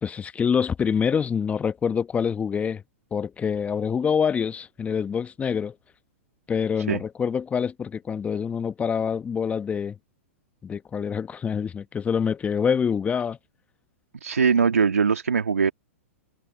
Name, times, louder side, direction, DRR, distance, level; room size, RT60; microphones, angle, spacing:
voice 1, 0.0-2.8 3.1-5.7 6.5-10.0 10.6-13.4, left 7 dB, 15° left, 1.0 m, -26 dB
voice 2, 14.1-15.7, right 6 dB, 85° right, 1.7 m, -21 dB
hypercardioid pair, 110°, 8 cm